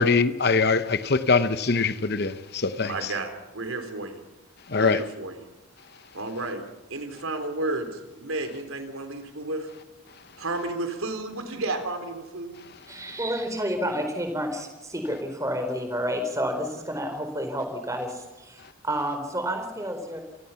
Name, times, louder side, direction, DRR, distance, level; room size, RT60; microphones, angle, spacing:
voice 1, 0.0-3.1 4.7-5.0, left 4 dB, 50° left, 11 dB, 0.9 m, -23 dB
voice 2, 2.8-4.2 4.8-5.4 6.1-6.6 6.9-9.7 10.4-12.6, right 2 dB, 75° right, 7 dB, 3.8 m, -32 dB
voice 3, 12.9-20.2, equal, 15° right, 6 dB, 4.3 m, -30 dB
27.5 x 19.0 x 5.8 m, 1.1 s
head